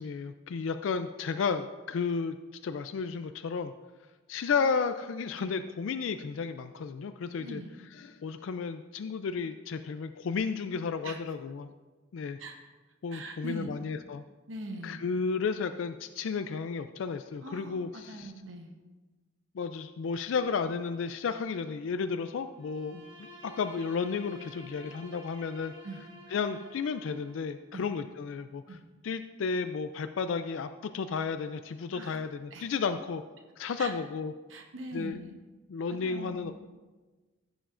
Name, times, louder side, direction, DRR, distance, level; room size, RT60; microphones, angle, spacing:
voice 1, 0.0-2.4 2.6-3.7 4.3-7.6 7.9-11.7 12.1-12.4 13.0-14.2 14.8-18.3 19.5-25.7 26.3-28.8 29.0-33.2 33.6-34.3 34.9-35.2 35.7-36.5, left 5 dB, 75° left, 9 dB, 0.4 m, -33 dB
voice 2, 7.4-7.8 11.0-11.2 12.4-12.6 13.1-13.8 14.5-15.1 17.4-18.8 22.9-23.0 25.8-26.0 27.7-27.9 28.7-28.8 31.9-32.2 32.5-32.6 33.8-33.9 34.5-35.3 35.9-36.5, right 1 dB, 75° right, 4 dB, 1.0 m, -42 dB
Bowed string instrument, 22.5-27.5, equal, 25° right, 2.1 m, -51 dB
15.5 x 7.0 x 2.5 m, 1.3 s
head